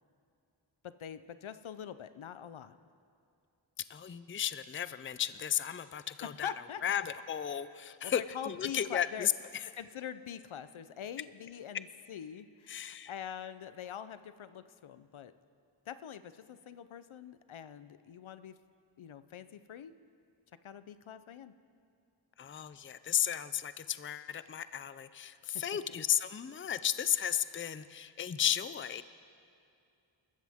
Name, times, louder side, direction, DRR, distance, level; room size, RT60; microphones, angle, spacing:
voice 1, 0.8-2.8 6.4-7.1 7.8-9.3 9.8-15.3 15.9-18.5 19.0-19.9 20.6-21.5 25.5-25.6, left 9 dB, 75° left, 13 dB, 0.7 m, -44 dB
voice 2, 3.9-6.5 6.8-9.7 12.7-13.1 22.4-29.0, left 10 dB, 25° left, 14 dB, 0.4 m, -34 dB
27.5 x 14.0 x 3.6 m, 2.5 s
wide cardioid pair, 85°, 48 cm